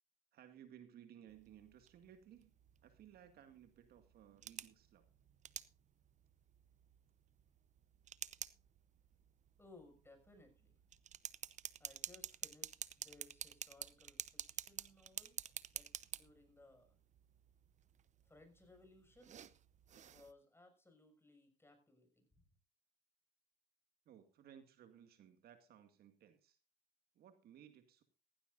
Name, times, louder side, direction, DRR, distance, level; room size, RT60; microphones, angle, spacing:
voice 1, 0.3-2.5 2.8-5.1 24.1-26.6 27.2-28.0, right 9 dB, 60° right, 9 dB, 2.0 m, -60 dB
sound 1, 1.3-20.3, right 9 dB, 40° right, 0.8 m, -51 dB
voice 2, 9.6-10.7 11.8-17.0 18.3-19.4 19.9-22.3, left 2 dB, 15° left, 6 dB, 6.3 m, -64 dB
16.0 x 15.5 x 2.6 m, 0.32 s
supercardioid pair, 90°, 18 cm